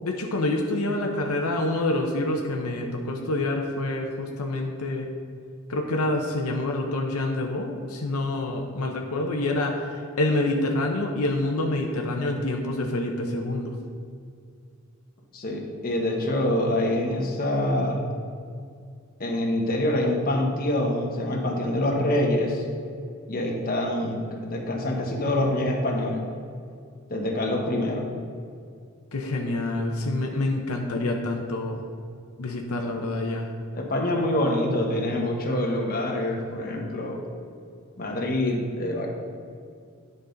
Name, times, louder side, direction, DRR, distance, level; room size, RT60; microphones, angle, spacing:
voice 1, 0.0-5.1 5.7-9.9 10.2-13.7 29.1-31.8 32.4-33.5, left 2 dB, 80° left, 2 dB, 0.7 m, -27 dB
voice 2, 15.3-18.1 19.2-22.6 23.3-26.2 27.1-28.1 33.7-37.2 38.0-39.1, left 1 dB, 40° left, 0 dB, 1.1 m, -25 dB
9.9 x 5.4 x 3.9 m, 2.3 s
head